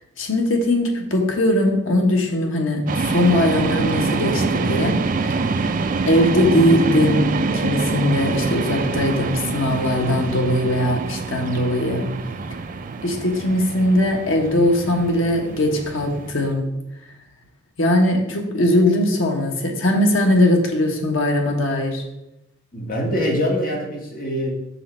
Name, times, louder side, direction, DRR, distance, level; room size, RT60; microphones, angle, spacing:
voice 1, 0.2-5.0 6.1-12.1 13.0-16.7 17.8-22.0, left 1 dB, 80° left, 2 dB, 1.3 m, -20 dB
sound 1, 2.9-16.5, right 4 dB, 40° right, 0.4 m, -25 dB
voice 2, 22.7-24.5, equal, 45° left, -1 dB, 1.8 m, -23 dB
6.3 x 5.6 x 4.3 m, 0.89 s
head